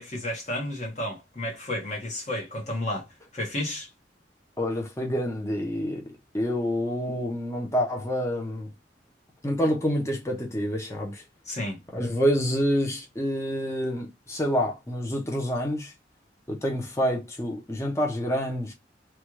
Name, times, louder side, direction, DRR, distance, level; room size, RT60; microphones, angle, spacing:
voice 1, 0.0-3.1 3.3-3.9 11.5-11.8, left 1 dB, 40° left, 1.1 m, -32 dB
voice 2, 4.6-8.7 9.4-11.2 11.9-15.9 16.5-18.7, equal, 15° left, 0.7 m, -27 dB
3.3 x 2.4 x 3.0 m
head